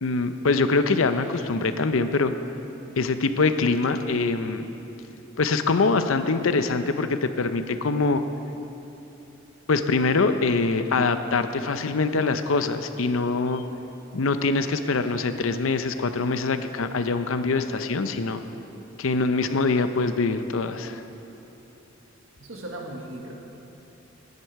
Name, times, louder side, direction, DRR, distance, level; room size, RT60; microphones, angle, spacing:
voice 1, 0.0-2.3 3.0-4.7 5.4-8.2 9.7-13.6 14.1-18.4 19.0-21.0, left 3 dB, 80° left, 9 dB, 0.7 m, -24 dB
voice 2, 22.4-23.3, right 1 dB, 80° right, -1 dB, 1.6 m, -37 dB
19.5 x 9.7 x 4.7 m, 2.9 s
head